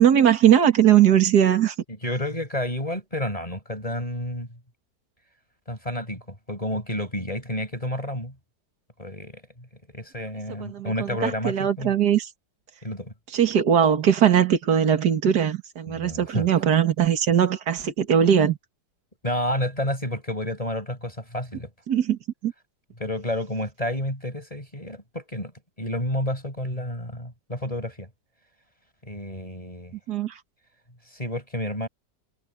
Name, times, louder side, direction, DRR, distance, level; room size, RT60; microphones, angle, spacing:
voice 1, 0.0-1.7 10.7-12.3 13.3-18.6 21.9-22.5 30.1-30.4, right 9 dB, 65° right, 2.3 m, -20 dB
voice 2, 2.0-4.5 5.7-8.3 9.0-9.4 9.9-11.9 12.8-13.1 15.9-16.5 19.2-21.7 23.0-25.5 25.8-28.1 29.0-29.9 31.1-31.9, left 1 dB, 20° left, 6.6 m, -30 dB
omnidirectional pair, 1.9 m